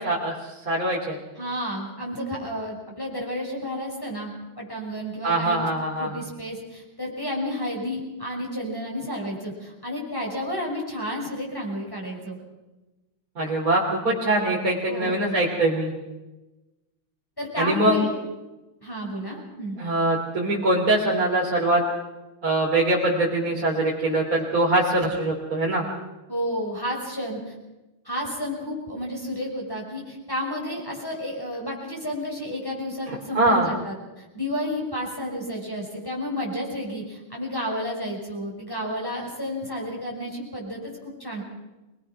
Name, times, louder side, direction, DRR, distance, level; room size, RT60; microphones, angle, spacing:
voice 1, 0.0-1.2 5.2-6.1 13.4-15.9 17.6-18.1 19.8-21.8 22.4-25.8 33.1-33.7, right 1 dB, 40° right, -5 dB, 3.9 m, -23 dB
voice 2, 1.3-5.7 6.0-12.4 14.9-15.3 17.4-18.1 18.8-19.8 26.3-27.5 28.0-41.4, equal, 10° left, -2 dB, 6.2 m, -31 dB
25.0 x 21.0 x 6.1 m, 1.1 s
omnidirectional pair, 2.4 m